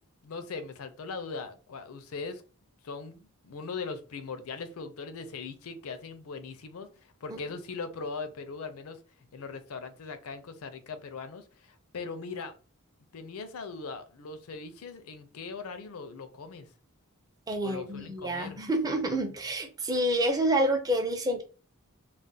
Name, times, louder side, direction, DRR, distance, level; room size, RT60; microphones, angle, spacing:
voice 1, 0.2-2.4 2.8-9.0 9.3-12.5 13.1-16.7 17.6-18.6, left 4 dB, 70° left, 9 dB, 0.5 m, -40 dB
voice 2, 17.5-21.4, right 1 dB, 15° right, 5 dB, 0.4 m, -28 dB
2.4 x 2.1 x 3.9 m, 0.36 s
head